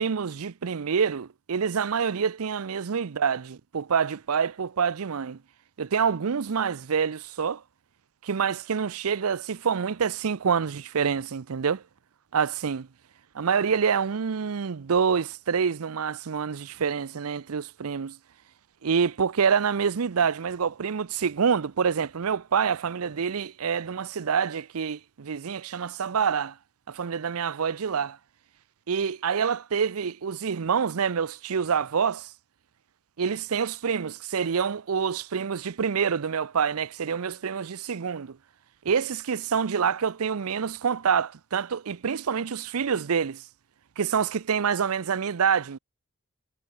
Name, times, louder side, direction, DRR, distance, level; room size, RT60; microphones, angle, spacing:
voice 1, 0.0-5.4 5.8-7.6 8.2-11.8 12.3-12.9 13.3-18.2 18.8-26.5 26.9-28.2 28.9-32.3 33.2-38.4 38.8-43.4 44.0-45.8, right 6 dB, 85° right, 0.6 m, -27 dB
head